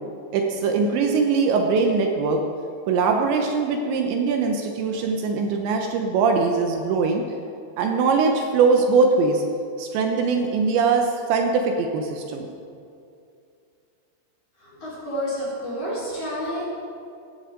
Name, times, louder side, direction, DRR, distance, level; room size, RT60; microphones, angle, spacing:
voice 1, 0.3-2.4 2.9-7.2 7.8-9.4 9.8-12.5, right 4 dB, 75° right, 3 dB, 3.1 m, -21 dB
voice 2, 14.6-16.6, equal, 35° left, -8 dB, 5.2 m, -30 dB
17.5 x 15.0 x 3.9 m, 2.4 s
omnidirectional pair, 5.5 m